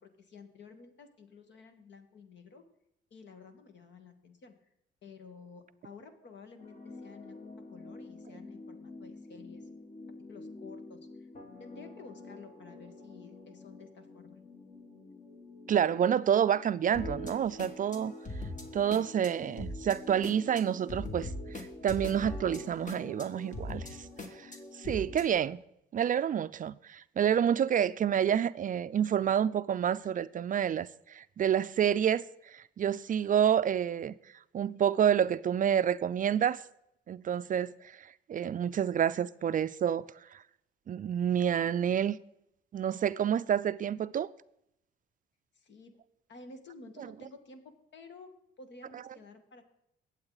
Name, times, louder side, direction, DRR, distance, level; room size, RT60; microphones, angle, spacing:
voice 1, 0.0-2.6 3.1-4.6 5.0-9.7 10.2-11.3 11.6-14.4 45.5-46.0 46.3-48.3 48.6-49.6, left 4 dB, 65° left, 1.8 m, -52 dB
sound 1, 6.6-25.3, left 1 dB, 40° left, 1.9 m, -44 dB
voice 2, 15.7-18.1 18.7-25.6 25.9-34.1 34.5-36.6 37.1-40.0 40.3-40.4 40.9-42.2 42.7-44.3 48.9-49.0, right 9 dB, 45° right, 0.4 m, -29 dB
20.5 x 7.8 x 4.0 m
cardioid pair, 90°, 20 cm